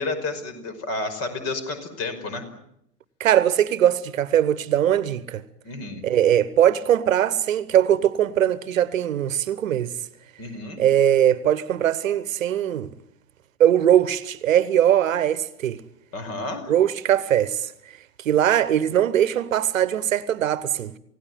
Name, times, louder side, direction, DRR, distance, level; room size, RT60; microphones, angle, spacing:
voice 1, 0.0-2.4 5.6-6.0 10.4-10.8 16.1-16.7, left 3 dB, 35° left, 5.3 m, -31 dB
voice 2, 3.2-5.4 6.0-9.9 10.8-12.9 13.6-15.8 16.7-17.7 18.2-20.9, right 10 dB, 60° right, 1.3 m, -20 dB
28.5 x 17.5 x 9.3 m
figure-of-eight pair, 100°, 45 cm